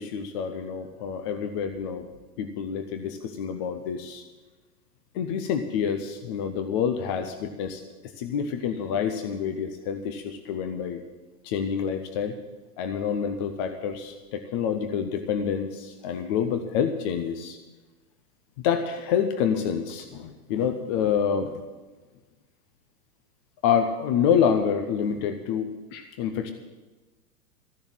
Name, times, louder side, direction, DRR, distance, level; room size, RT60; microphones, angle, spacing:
voice 1, 0.0-2.0 2.4-4.2 5.1-7.8 8.2-11.0 11.4-12.4 12.8-17.6 18.6-21.6 23.6-26.5, left 7 dB, 20° left, 8 dB, 0.4 m, -27 dB
14.5 x 7.0 x 9.3 m, 1.2 s
hypercardioid pair, 115°, 47 cm